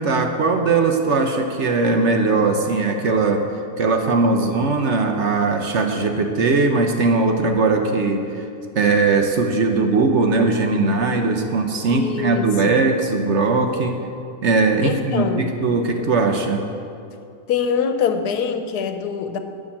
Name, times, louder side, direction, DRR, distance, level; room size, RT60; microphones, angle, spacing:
voice 1, 0.0-3.4 3.8-8.4 8.7-14.0 14.4-16.6, right 3 dB, 55° right, 5 dB, 1.0 m, -19 dB
voice 2, 4.3-4.7 11.9-12.8 14.8-15.5 17.5-19.4, left 7 dB, 90° left, 8 dB, 1.4 m, -24 dB
10.0 x 6.2 x 8.6 m, 2.5 s
omnidirectional pair, 1.6 m